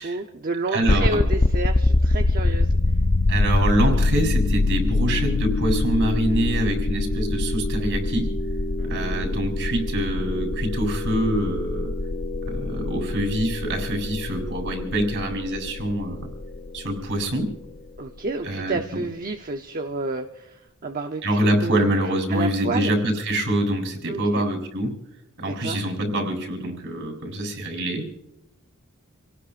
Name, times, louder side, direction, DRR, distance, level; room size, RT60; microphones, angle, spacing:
voice 1, 0.0-2.7 8.8-9.4 18.0-21.9 22.3-22.9 24.1-24.4 25.4-25.9, right 3 dB, 40° right, 4 dB, 0.8 m, -30 dB
voice 2, 0.7-1.2 3.3-8.3 8.9-11.9 12.5-16.3 16.7-17.5 18.4-18.8 21.2-25.0 25.4-28.1, right 1 dB, 60° right, 2 dB, 3.7 m, -25 dB
sound 1, 0.8-17.8, left 2 dB, 35° left, 0.6 m, -24 dB
28.0 x 18.0 x 2.5 m, 0.88 s
head